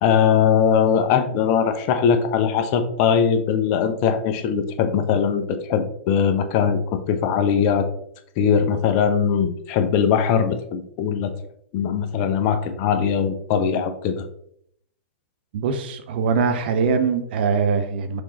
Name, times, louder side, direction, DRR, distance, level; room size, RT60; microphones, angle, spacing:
voice 1, 0.0-7.9 8.4-11.3 11.7-14.2, left 7 dB, 40° left, 0.8 m, -20 dB
voice 2, 15.5-18.2, right 5 dB, 55° right, 0.8 m, -22 dB
6.3 x 3.8 x 4.1 m
figure-of-eight pair, 105°, 7 cm